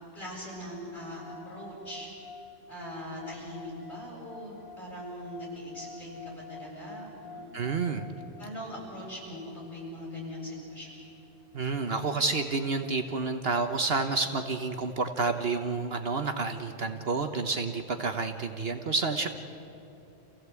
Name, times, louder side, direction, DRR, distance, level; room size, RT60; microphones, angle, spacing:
voice 1, 0.1-2.1 2.7-7.4 8.4-10.9, equal, 40° left, -4 dB, 7.8 m, -41 dB
sound 1, 0.9-12.2, left 3 dB, 75° right, 5.0 m, -50 dB
voice 2, 7.5-8.1 11.5-19.3, right 4 dB, 55° right, 6 dB, 1.2 m, -29 dB
27.0 x 16.0 x 8.2 m, 2.9 s
omnidirectional pair, 1.3 m